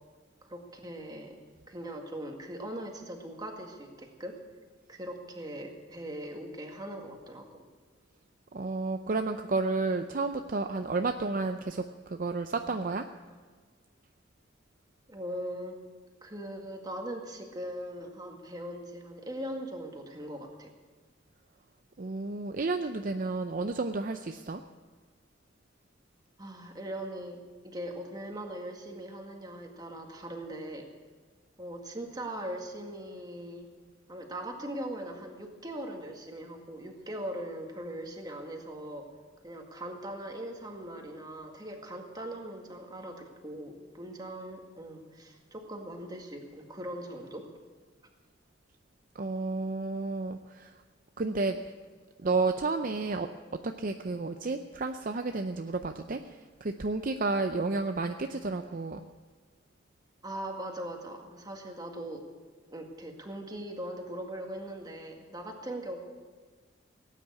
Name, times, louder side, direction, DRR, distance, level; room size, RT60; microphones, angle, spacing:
voice 1, 0.4-1.4 1.7-4.4 4.9-7.5 15.1-15.8 16.2-20.7 26.4-30.9 31.6-33.7 34.1-39.1 39.4-47.4 60.2-62.2 62.7-66.0, right 1 dB, 20° right, 2 dB, 1.9 m, -40 dB
voice 2, 8.5-13.1 22.0-24.6 49.2-50.7 51.2-51.6 52.2-53.3 53.6-59.0, right 3 dB, 45° right, 7 dB, 0.6 m, -31 dB
17.5 x 9.2 x 8.3 m, 1.4 s
head